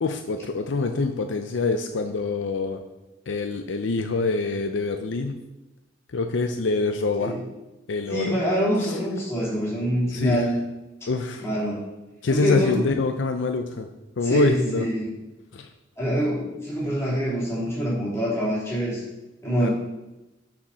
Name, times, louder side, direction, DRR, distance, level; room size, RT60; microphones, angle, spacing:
voice 1, 0.0-2.8 3.3-5.4 6.1-7.4 7.9-8.4 8.9-9.0 10.1-10.4 11.1-11.5 12.2-13.9 14.2-14.8 15.5-15.7 19.6-19.7, left 3 dB, 90° left, 6 dB, 0.5 m, -25 dB
voice 2, 8.1-10.6 11.4-11.8 12.3-12.8 14.2-15.1 16.0-19.0 19.4-19.7, equal, 15° left, -8 dB, 3.1 m, -25 dB
7.1 x 5.0 x 5.6 m, 1.0 s
head